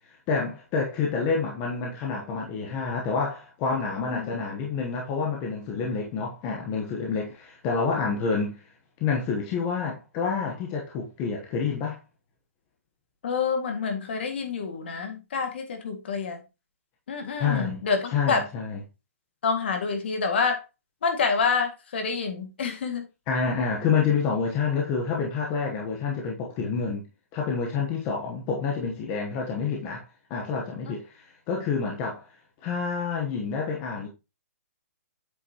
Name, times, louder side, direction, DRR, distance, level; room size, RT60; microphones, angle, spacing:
voice 1, 0.3-8.6 9.0-12.0 17.4-17.9 18.1-18.8 23.3-27.1 27.3-30.0 30.3-32.2 32.6-34.1, left 5 dB, 20° left, 1.0 m, -28 dB
voice 2, 13.2-16.4 17.1-18.5 19.4-20.6 21.0-23.0, left 5 dB, 45° left, 1.9 m, -27 dB
8.1 x 5.8 x 2.9 m
hypercardioid pair, 175°, 8 cm